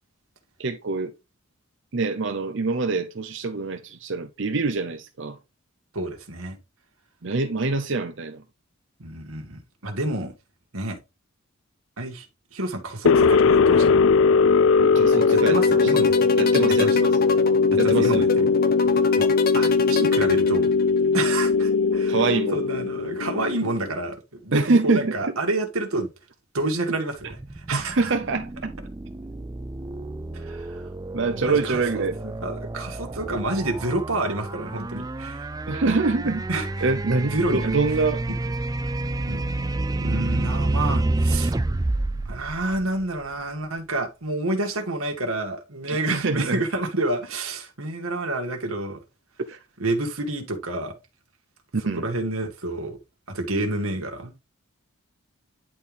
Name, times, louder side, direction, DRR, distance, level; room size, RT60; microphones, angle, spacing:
voice 1, 0.6-1.1 1.9-5.4 7.2-8.4 14.8-15.9 16.4-17.1 17.8-18.3 22.1-22.6 24.5-25.3 27.7-28.7 31.1-32.2 35.7-36.5 36.8-38.2 45.9-46.6 49.5-49.6 51.7-52.0, right 3 dB, 60° right, 0.7 m, -25 dB
voice 2, 5.9-6.6 9.0-10.3 10.7-11.0 12.0-12.3 12.5-14.0 15.3-16.3 16.8-16.9 17.8-18.4 19.2-19.3 19.5-20.7 21.1-22.2 22.5-26.1 26.5-28.1 30.3-30.9 31.3-35.5 36.2-36.7 37.3-37.7 39.3-39.4 40.0-41.5 42.3-49.0 49.8-50.9 51.9-53.0 53.3-54.3, right 2 dB, 90° right, 2.2 m, -29 dB
sound 1, 13.1-23.9, left 4 dB, 65° left, 0.3 m, -19 dB
sound 2, 15.0-21.0, left 5 dB, 45° left, 0.9 m, -28 dB
sound 3, 27.2-43.4, right 2 dB, 15° right, 0.4 m, -29 dB
10.5 x 4.5 x 3.5 m
head